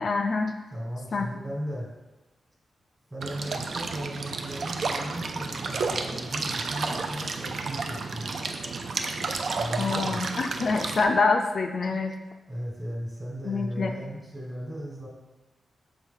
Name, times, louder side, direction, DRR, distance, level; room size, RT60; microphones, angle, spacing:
voice 1, 0.0-0.6 1.1-1.3 9.8-12.1 13.4-13.9, left 4 dB, 50° left, 4 dB, 0.4 m, -26 dB
voice 2, 0.7-1.9 3.1-8.4 9.5-10.2 12.5-15.1, equal, 15° right, -2 dB, 1.4 m, -36 dB
sound 1, 3.2-11.0, right 4 dB, 55° right, 0.4 m, -31 dB
6.3 x 4.5 x 3.7 m, 1.1 s
wide cardioid pair, 155°, 0 cm